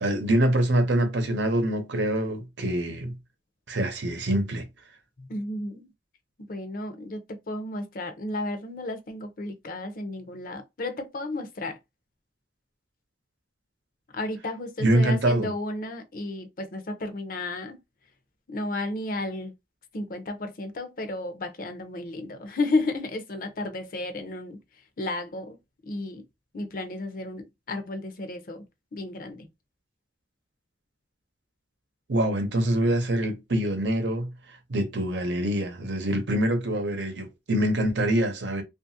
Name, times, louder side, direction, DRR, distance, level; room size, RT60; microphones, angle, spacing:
voice 1, 0.0-3.1 3.7-4.7 14.8-15.5 32.1-34.3 34.7-38.6, right 1 dB, 90° right, 0.8 m, -25 dB
voice 2, 5.2-5.9 6.5-11.8 14.1-17.8 18.5-19.5 19.9-24.6 25.0-25.6 25.9-26.2 26.5-28.6 28.9-29.5, left 2 dB, 50° left, 0.6 m, -33 dB
2.8 x 2.4 x 2.7 m
head